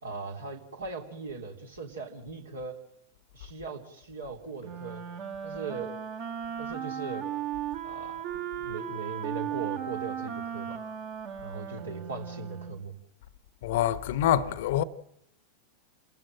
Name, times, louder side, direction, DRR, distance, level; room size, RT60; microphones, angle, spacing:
voice 1, 0.0-2.7 3.3-5.0 5.4-6.0 6.6-7.3 7.8-8.2 8.5-10.8 11.4-12.9, right 4 dB, 70° right, 3.3 m, -39 dB
Wind instrument woodwind instrument, 4.6-12.8, right 9 dB, 40° right, 2.0 m, -36 dB
voice 2, 13.6-14.8, left 11 dB, 55° left, 0.9 m, -25 dB
28.0 x 14.0 x 8.9 m
figure-of-eight pair, 90°, 0 cm